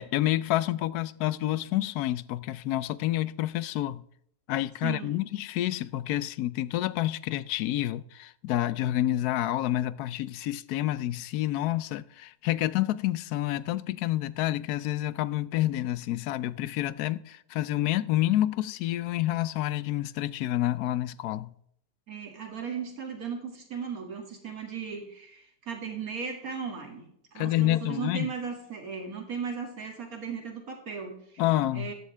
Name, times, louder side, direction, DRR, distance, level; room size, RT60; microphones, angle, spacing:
voice 1, 0.0-4.0 4.5-21.5 27.3-28.3 31.4-31.9, left 14 dB, 75° left, 1.1 m, -28 dB
voice 2, 4.8-5.2 22.1-27.1 27.3-31.4 31.7-31.9, right 6 dB, 60° right, 2.6 m, -36 dB
14.0 x 11.0 x 3.3 m
omnidirectional pair, 1.7 m